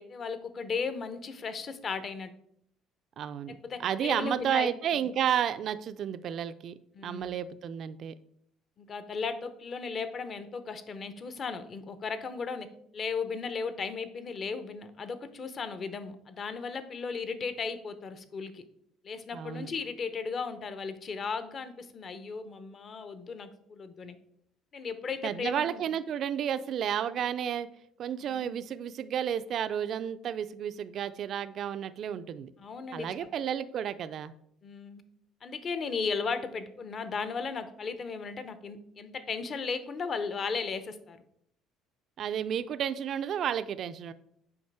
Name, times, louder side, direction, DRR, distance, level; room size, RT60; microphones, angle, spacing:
voice 1, 0.0-2.3 3.5-5.1 6.9-7.3 8.8-18.6 19.0-24.2 24.7-25.9 28.2-28.6 32.6-33.3 34.6-35.0 35.4-41.2, left 5 dB, 35° left, 12 dB, 0.7 m, -36 dB
voice 2, 3.2-6.7 7.0-8.1 19.3-19.7 25.2-27.7 28.0-32.5 32.9-34.3 42.2-44.1, right 9 dB, 50° right, 12 dB, 0.4 m, -32 dB
7.1 x 5.1 x 4.8 m, 0.71 s
cardioid pair, 125°, 0 cm